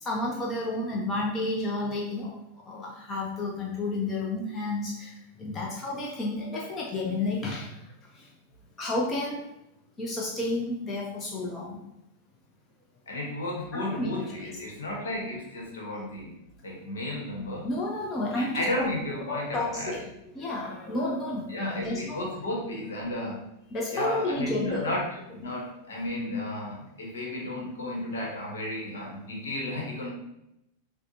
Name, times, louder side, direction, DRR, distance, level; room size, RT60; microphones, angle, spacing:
voice 1, 0.0-2.4 2.7-5.1 5.4-7.7 8.8-9.5 10.0-11.8 13.7-14.5 17.6-18.9 19.3-20.0 20.3-22.3 23.7-24.9, left 2 dB, 25° left, -2 dB, 0.7 m, -31 dB
voice 2, 13.1-16.3 16.6-17.7 18.3-19.9 21.5-23.4 23.9-30.1, left 1 dB, 65° left, -2 dB, 1.1 m, -33 dB
6.0 x 2.2 x 2.7 m, 0.85 s
figure-of-eight pair, 90°, 0 cm